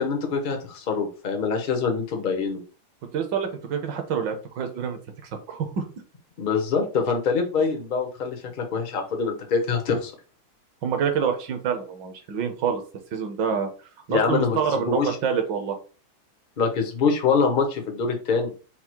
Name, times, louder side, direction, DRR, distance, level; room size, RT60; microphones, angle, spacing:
voice 1, 0.0-2.6 6.4-10.1 14.1-15.2 16.6-18.5, left 5 dB, 65° left, 3 dB, 0.5 m, -24 dB
voice 2, 3.1-5.0 5.5-5.8 10.8-12.8 13.1-13.7 14.1-15.8, right 7 dB, 70° right, 6 dB, 1.4 m, -26 dB
5.7 x 2.0 x 4.5 m, 0.36 s
omnidirectional pair, 2.2 m